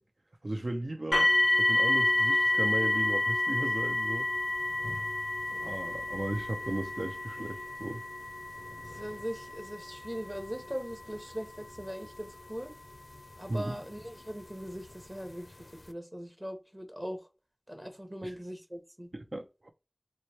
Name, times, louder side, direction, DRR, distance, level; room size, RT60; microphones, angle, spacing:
voice 1, 0.4-1.3 1.6-4.3 5.6-8.0 13.5-13.8 18.2-18.3 19.1-19.7, right 1 dB, 75° right, 0.4 m, -36 dB
sound 1, 1.1-14.0 14.8-14.9 15.5-15.6, left 2 dB, 65° left, 0.4 m, -30 dB
voice 2, 9.0-12.7 13.4-15.6 15.9-17.2 17.7-19.1, equal, 20° right, 0.8 m, -40 dB
3.0 x 2.1 x 4.0 m
wide cardioid pair, 45°, 0 cm